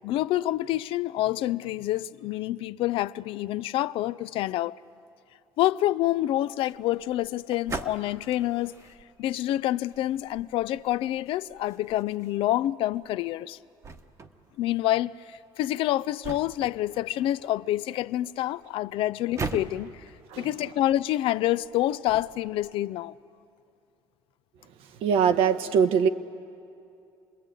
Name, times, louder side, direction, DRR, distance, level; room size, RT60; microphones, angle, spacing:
voice 1, 0.0-4.8 5.6-8.8 9.2-13.6 14.6-19.9 20.4-23.1, left 14 dB, 65° left, 0.5 m, -27 dB
sound 1, 6.5-22.7, right 4 dB, 30° right, 1.2 m, -43 dB
voice 2, 25.0-26.1, right 7 dB, 70° right, 1.2 m, -22 dB
27.0 x 21.0 x 9.1 m
cardioid pair, 115°, 10 cm